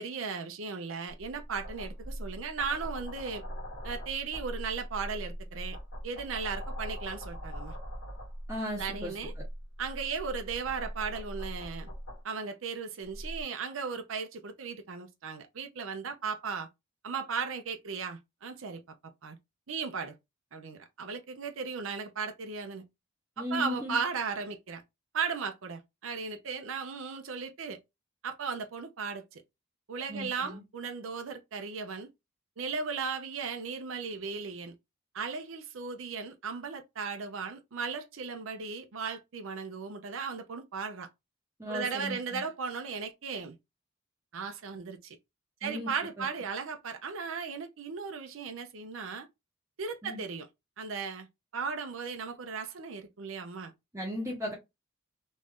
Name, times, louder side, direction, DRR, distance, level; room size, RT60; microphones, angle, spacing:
voice 1, 0.0-3.4 3.8-5.8 6.0-7.8 8.8-9.3 9.8-11.9 12.2-16.7 17.0-18.8 19.2-19.4 19.7-20.1 20.5-22.8 23.5-24.8 25.1-27.8 28.2-29.4 29.9-32.1 32.6-34.7 35.1-41.1 41.7-43.6 44.3-45.2 45.6-49.3 49.8-50.5 50.8-51.3 51.5-53.7, right 5 dB, 75° right, 0.6 m, -36 dB
sound 1, 1.1-12.2 13.0-13.4, equal, 55° left, 1.4 m, -41 dB
voice 2, 8.5-9.2 23.4-24.0 30.1-30.6 41.6-42.4 45.6-45.9 46.2-46.3 50.0-50.2 53.9-54.5, left 1 dB, 15° right, 0.9 m, -36 dB
3.1 x 2.6 x 3.5 m
head